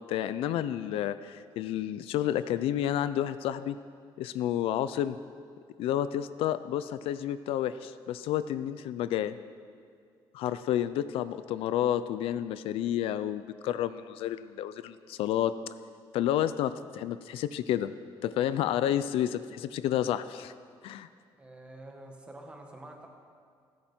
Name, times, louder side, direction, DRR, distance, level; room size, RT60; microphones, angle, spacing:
voice 1, 0.1-3.8 4.2-5.2 5.8-9.4 10.3-15.6 16.1-17.9 18.2-20.5 20.8-21.1, left 11 dB, 80° left, 13 dB, 0.5 m, -30 dB
voice 2, 21.4-23.1, right 1 dB, 10° right, 1 dB, 1.7 m, -47 dB
30.0 x 10.0 x 4.5 m, 2.2 s
cardioid pair, 180°, 9 cm